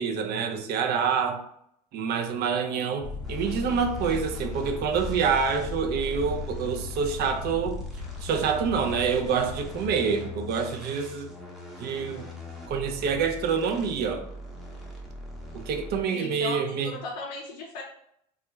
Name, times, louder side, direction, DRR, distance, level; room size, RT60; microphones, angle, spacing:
voice 1, 0.0-1.4 1.9-7.8 8.2-11.3 11.8-12.2 12.7-14.2 15.5-16.9, right 6 dB, 50° right, 5 dB, 0.5 m, -27 dB
sound 1, 3.0-10.0, left 3 dB, 20° left, 0.3 m, -37 dB
sound 2, 3.2-16.2, left 2 dB, ahead, 0.7 m, -43 dB
voice 2, 3.5-3.8 16.1-17.8, left 2 dB, 80° left, -2 dB, 0.5 m, -37 dB
2.3 x 2.1 x 3.0 m, 0.73 s
hypercardioid pair, 75°, 21 cm